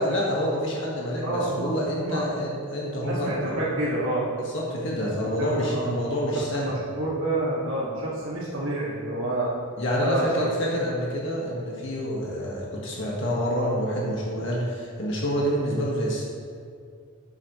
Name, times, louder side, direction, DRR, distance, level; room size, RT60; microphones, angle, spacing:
voice 1, 0.0-3.6 4.5-6.8 9.8-16.2, equal, 60° left, -4 dB, 1.6 m, -27 dB
voice 2, 1.2-2.2 3.0-4.3 5.0-6.1 6.5-9.5 9.9-10.4, right 1 dB, 75° right, -9 dB, 2.1 m, -28 dB
12.0 x 8.4 x 3.2 m, 2.2 s
head